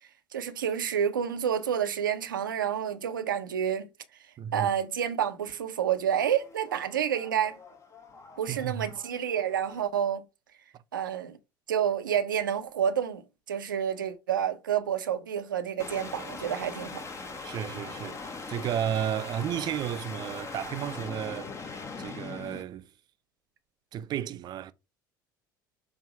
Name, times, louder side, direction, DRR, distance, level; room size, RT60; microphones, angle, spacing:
voice 1, 0.3-3.9 4.5-7.6 8.4-10.2 10.9-11.4 11.7-17.0, right 9 dB, 75° right, 0.8 m, -29 dB
voice 2, 4.4-4.7 8.5-8.9 17.4-21.7 22.0-22.9 23.9-24.7, right 10 dB, 40° right, 0.6 m, -33 dB
sound 1, 6.1-9.8 15.8-22.6, left 4 dB, 25° left, 1.2 m, -41 dB
7.2 x 2.8 x 5.0 m
figure-of-eight pair, 65°, 11 cm